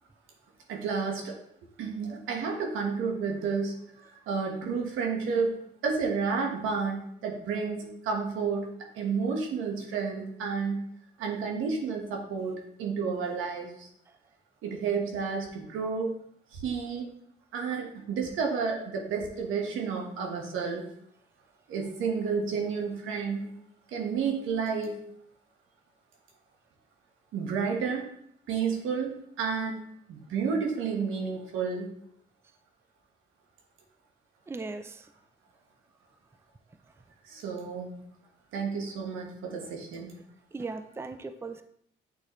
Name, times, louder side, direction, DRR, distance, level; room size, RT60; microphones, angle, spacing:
voice 1, 0.7-1.4 1.8-8.7 8.9-10.9 11.2-13.9 14.6-16.2 16.5-17.1 17.5-20.9 21.7-23.5 23.9-25.0 27.3-28.1 28.5-29.8 30.1-31.9 37.2-38.0 38.5-40.2, right 5 dB, 85° right, 1 dB, 1.3 m, -31 dB
voice 2, 34.5-35.0 40.5-41.6, right 3 dB, 10° right, 9 dB, 0.4 m, -38 dB
8.5 x 4.1 x 3.1 m, 0.69 s
cardioid pair, 90°, 20 cm